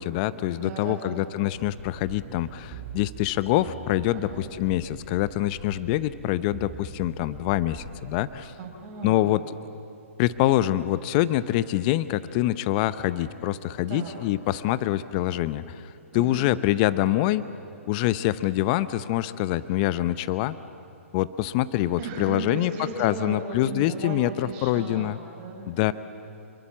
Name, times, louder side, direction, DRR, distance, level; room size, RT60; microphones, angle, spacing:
voice 1, 0.0-8.5 9.0-9.4 10.2-17.4 17.9-20.6 21.1-22.7 23.0-25.2 25.7-25.9, left 14 dB, 35° left, 15 dB, 0.8 m, -25 dB
voice 2, 0.6-1.2 4.1-4.4 8.6-9.3 13.9-14.1 16.1-16.4 22.0-25.9, right 4 dB, 35° right, 1 dB, 5.2 m, -36 dB
sound 1, 1.5-8.3, right 5 dB, 20° right, 4.4 m, -43 dB
28.0 x 22.5 x 7.3 m, 2.7 s
hypercardioid pair, 130°, 8 cm